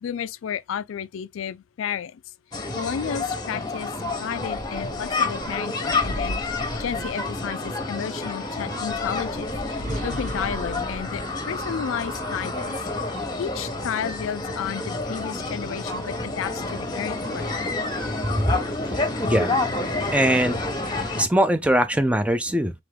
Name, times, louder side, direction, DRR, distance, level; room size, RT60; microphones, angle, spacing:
voice 1, 0.0-2.2 2.7-3.9 4.2-6.4 6.8-12.7 13.4-17.6, left 8 dB, 85° left, 0.3 m, -32 dB
sound 1, 2.5-21.3, left 2 dB, 20° left, 0.8 m, -29 dB
sound 2, 4.0-7.7 8.6-12.2, equal, 40° right, 1.0 m, -37 dB
voice 2, 18.9-19.5 20.1-20.6 21.2-22.7, right 1 dB, 5° right, 0.4 m, -21 dB
3.8 x 3.4 x 3.3 m
head